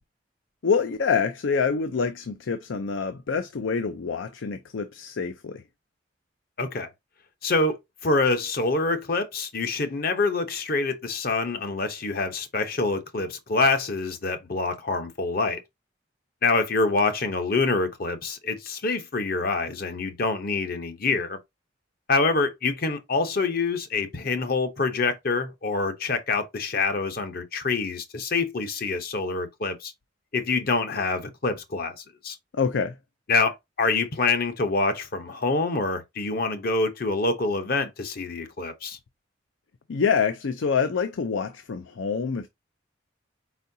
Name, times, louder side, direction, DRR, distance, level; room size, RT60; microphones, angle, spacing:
voice 1, 0.6-5.6 32.5-32.9 39.9-42.5, left 5 dB, 85° left, 0.5 m, -26 dB
voice 2, 6.6-6.9 7.4-15.6 16.4-21.4 22.1-29.9 30.3-32.4 33.3-39.0, left 3 dB, 50° left, 0.8 m, -26 dB
4.6 x 4.1 x 2.7 m
head